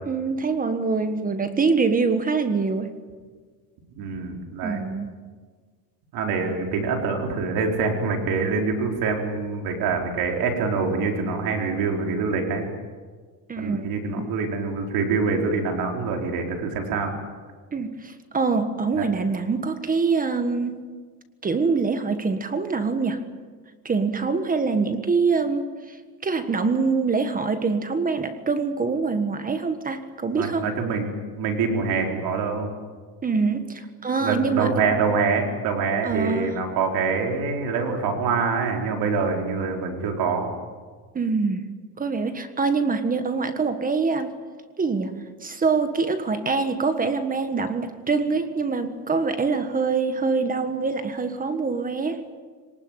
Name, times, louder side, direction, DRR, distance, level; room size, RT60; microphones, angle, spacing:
voice 1, 0.1-2.9 4.6-5.1 13.5-14.2 17.7-20.9 21.4-23.2 23.8-26.0 26.2-30.7 33.2-34.8 36.0-36.6 41.1-44.3 44.8-52.4, right 4 dB, 20° right, 9 dB, 1.5 m, -25 dB
voice 2, 4.0-4.8 6.1-12.7 13.6-17.1 19.0-19.1 30.4-31.1 31.4-32.7 34.2-40.5, right 4 dB, 60° right, 2 dB, 4.8 m, -25 dB
23.5 x 19.5 x 9.2 m, 1.5 s
cardioid pair, 140°, 40 cm